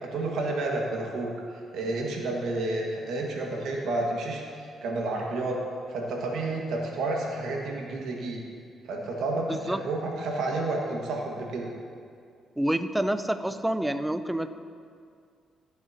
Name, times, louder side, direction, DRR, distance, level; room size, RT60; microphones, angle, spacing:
voice 1, 0.0-1.3 1.7-5.6 5.9-8.4 8.8-11.7, right 2 dB, 75° right, -1 dB, 1.7 m, -30 dB
voice 2, 9.5-9.8 12.6-14.5, right 1 dB, 5° right, 11 dB, 0.5 m, -28 dB
14.5 x 7.9 x 2.8 m, 2.2 s
cardioid pair, 90°, 0 cm